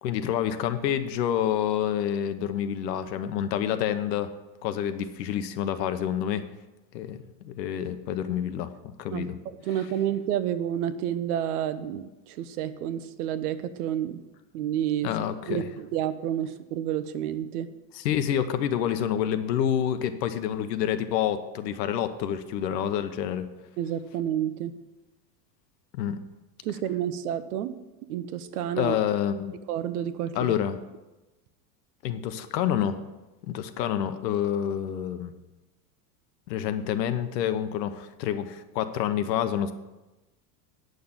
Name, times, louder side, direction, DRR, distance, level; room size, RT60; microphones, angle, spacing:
voice 1, 0.0-4.3 4.6-6.4 6.9-8.7 9.0-9.4 15.0-15.7 17.9-23.5 25.9-26.2 28.8-29.6 30.3-30.8 32.0-33.0 33.5-35.3 36.5-39.7, left 10 dB, 85° left, 10 dB, 1.1 m, -28 dB
voice 2, 9.1-14.2 14.5-15.1 15.5-17.7 23.8-24.7 26.6-27.7 28.1-29.0 29.7-30.6, right 10 dB, 65° right, 12 dB, 0.9 m, -30 dB
9.4 x 6.6 x 7.2 m, 1.1 s
supercardioid pair, 170°, 48 cm